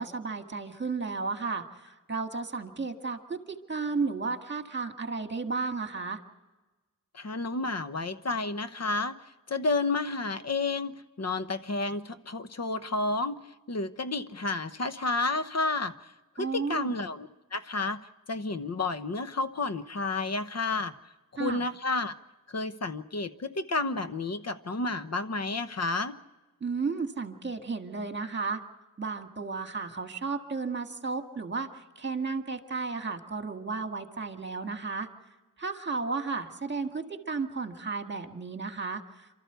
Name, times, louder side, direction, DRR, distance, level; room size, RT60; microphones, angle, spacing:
voice 1, 0.0-6.2 16.4-16.9 21.4-21.6 26.6-28.6 29.0-31.7 32.0-35.1 35.6-39.0, right 4 dB, 35° right, 5 dB, 1.9 m, -33 dB
voice 2, 7.1-9.1 9.5-10.9 11.2-13.4 13.7-15.9 16.4-18.0 18.3-20.9 21.4-22.1 22.5-26.1, left 3 dB, 50° left, 10 dB, 1.0 m, -31 dB
28.5 x 13.5 x 8.1 m, 1.2 s
wide cardioid pair, 115°, 33 cm